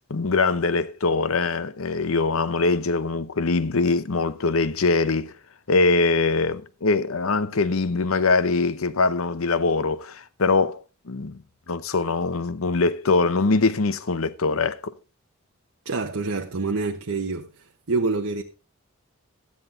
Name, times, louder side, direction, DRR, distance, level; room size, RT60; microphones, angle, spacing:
voice 1, 0.1-5.3 5.7-11.4 11.7-14.9, left 3 dB, 85° left, 0.8 m, -23 dB
voice 2, 15.8-17.5 17.9-18.4, right 3 dB, 85° right, 1.0 m, -26 dB
13.0 x 9.6 x 3.8 m
head